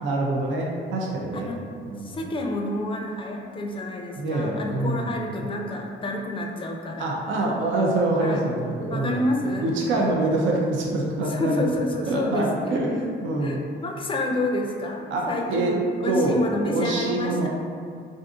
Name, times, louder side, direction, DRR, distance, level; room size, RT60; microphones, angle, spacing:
voice 1, 0.0-1.5 1.9-2.2 4.2-5.1 7.0-9.2 9.6-11.6 12.1-13.6 15.1-15.8 16.1-16.4 16.7-17.5, right 2 dB, 75° right, -2 dB, 0.5 m, -25 dB
voice 2, 2.0-7.1 8.2-8.4 8.9-10.1 11.3-12.8 13.4-17.5, left 1 dB, 25° left, 2 dB, 0.4 m, -29 dB
2.5 x 2.5 x 3.6 m, 2.2 s
cardioid pair, 90°, 20 cm